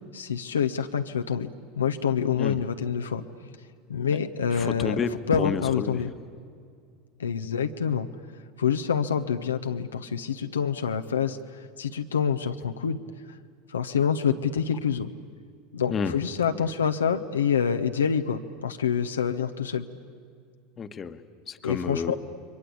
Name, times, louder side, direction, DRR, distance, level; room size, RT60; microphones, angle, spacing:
voice 1, 0.1-1.5 1.8-3.2 3.9-5.0 5.3-6.1 7.2-8.1 8.6-11.4 11.8-13.0 13.7-15.1 15.7-19.8 21.6-22.2, left 7 dB, 85° left, 6 dB, 0.9 m, -26 dB
voice 2, 4.5-6.0 14.7-14.8 15.9-16.1 16.5-16.6 20.8-22.2, left 6 dB, 30° left, 10 dB, 1.3 m, -31 dB
29.5 x 23.0 x 8.5 m, 2.2 s
hypercardioid pair, 85°, 0 cm